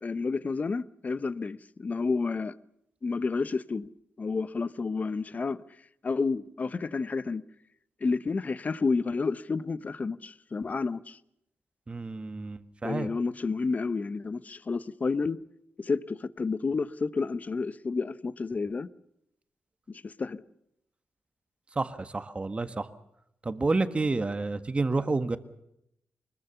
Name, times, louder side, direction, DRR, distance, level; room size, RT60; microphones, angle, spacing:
voice 1, 0.0-2.5 3.0-3.9 4.2-5.6 6.0-7.4 8.0-11.2 12.8-15.4 15.8-18.9 19.9-20.4, left 4 dB, 40° left, 0.8 m, -30 dB
voice 2, 11.9-13.1 21.7-22.9 23.4-25.4, right 3 dB, 30° right, 1.5 m, -29 dB
24.0 x 21.0 x 6.9 m
cardioid pair, 100°, 4 cm